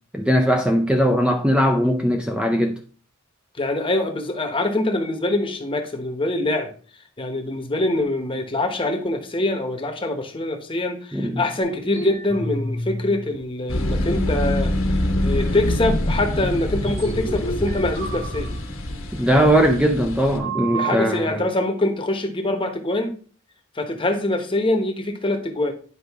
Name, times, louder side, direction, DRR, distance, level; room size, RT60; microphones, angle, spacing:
voice 1, 0.1-2.8 11.1-11.5 19.1-21.5, equal, 5° right, 0.5 m, -19 dB
voice 2, 3.6-6.7 7.2-18.5 20.7-23.1 23.7-25.7, left 2 dB, 25° left, 1.0 m, -24 dB
sound 1, 11.6-13.4 13.7-14.6 15.1-15.2 15.8-16.0 16.7-19.3 20.4-20.9, right 2 dB, 75° right, 4.1 m, -31 dB
sound 2, 13.7-20.4, left 1 dB, 85° left, 1.4 m, -25 dB
9.8 x 5.1 x 3.5 m
head